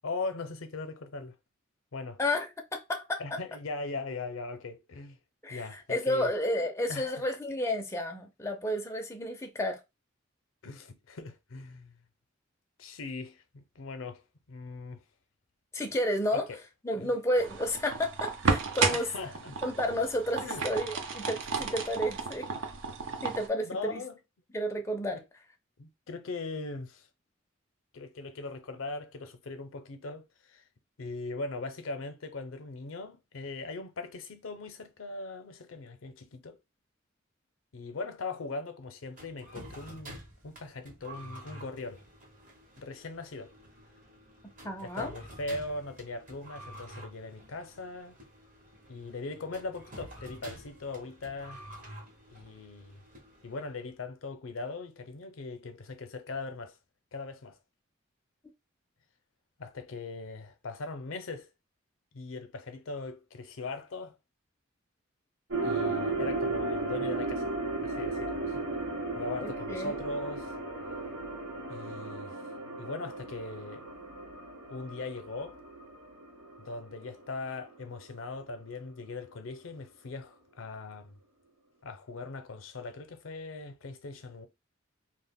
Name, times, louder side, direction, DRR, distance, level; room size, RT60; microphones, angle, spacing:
voice 1, 0.0-1.3 1.9-2.2 3.2-5.2 5.5-6.3 6.9-7.1 10.6-12.0 12.8-14.2 14.5-15.0 16.3-16.6 17.0-17.1 18.9-19.6 20.4-20.6 23.6-24.2 25.8-27.1 27.9-30.6 31.0-36.6 37.7-42.0 42.8-43.5 44.8-48.2 48.9-51.6 52.3-53.0 53.4-56.8 57.1-57.6 59.6-61.5 62.1-64.2 65.6-67.5 67.8-68.7 69.1-70.5 71.7-72.4 72.8-73.9 74.7-75.6 76.6-81.2 81.8-84.5, left 3 dB, 80° left, 0.6 m, -40 dB
voice 2, 2.2-3.4 5.4-9.8 15.7-16.5 16.8-19.1 19.6-22.5 23.2-24.0 24.5-25.2 44.6-45.1 69.4-70.0, left 1 dB, 15° left, 0.4 m, -31 dB
sound 1, 17.4-23.5, right 4 dB, 65° right, 0.5 m, -33 dB
sound 2, 39.1-53.8, right 1 dB, 45° right, 0.9 m, -49 dB
sound 3, 65.5-77.8 78.0-78.1, right 3 dB, 85° right, 0.9 m, -35 dB
2.4 x 2.1 x 3.5 m
head